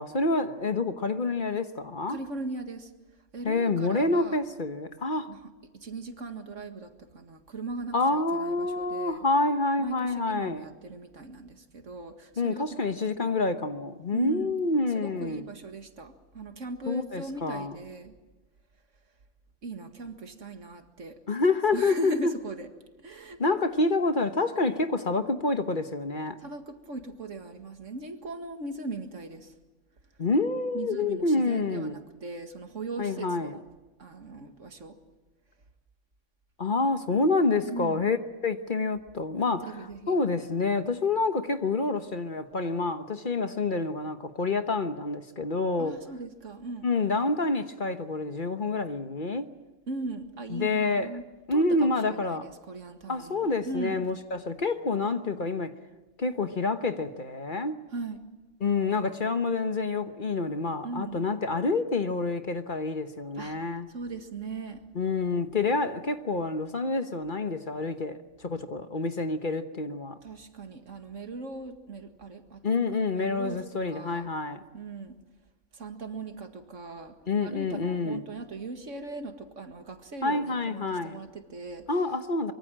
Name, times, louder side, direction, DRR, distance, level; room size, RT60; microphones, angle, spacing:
voice 1, 0.0-2.2 3.4-5.3 7.9-10.6 12.4-15.4 16.9-17.8 21.3-22.3 23.4-26.4 30.2-32.0 33.0-33.6 36.6-38.2 38.4-39.7 40.1-46.0 46.8-49.5 50.5-51.1 51.5-52.5 53.1-55.7 56.2-57.8 58.6-63.9 64.9-70.1 72.6-74.6 77.3-78.3 80.2-81.2 81.9-82.5, left 3 dB, 40° left, 1.2 m, -28 dB
voice 2, 2.1-2.9 3.3-4.4 5.3-9.3 9.8-13.0 14.1-14.5 14.9-18.2 19.6-21.2 21.7-22.7 23.0-23.4 26.4-29.5 30.7-33.7 34.0-35.0 37.7-38.1 39.6-40.2 45.8-46.9 49.9-54.1 57.9-58.2 60.8-61.2 63.4-63.6 63.9-64.8 70.2-72.8 73.2-74.3 74.7-75.2 75.7-77.1 77.4-81.9, right 3 dB, 75° right, 2.2 m, -39 dB
24.5 x 23.0 x 7.5 m
omnidirectional pair, 1.3 m